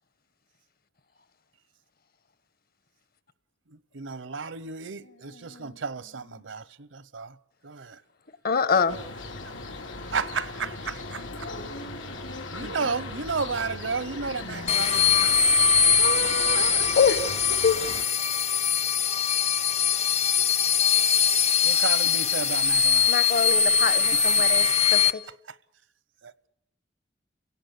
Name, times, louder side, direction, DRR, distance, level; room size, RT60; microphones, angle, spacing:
voice 1, 3.9-7.3 7.6-8.0 10.1-11.2 12.5-15.4 16.0-16.9 21.6-23.1 24.1-24.4 26.2-26.5, right 5 dB, 80° right, 0.9 m, -33 dB
voice 2, 5.0-6.4 11.3-12.9 14.3-15.2, equal, 70° left, 2.6 m, -46 dB
voice 3, 8.4-9.0 17.0-17.2 17.6-17.8 23.1-24.6 24.9-25.0, left 6 dB, 50° left, 1.3 m, -23 dB
sound 1, 8.9-18.1, left 2 dB, 90° left, 2.8 m, -38 dB
sound 2, 14.7-25.1, left 6 dB, 35° left, 0.9 m, -22 dB
30.0 x 17.5 x 8.1 m
head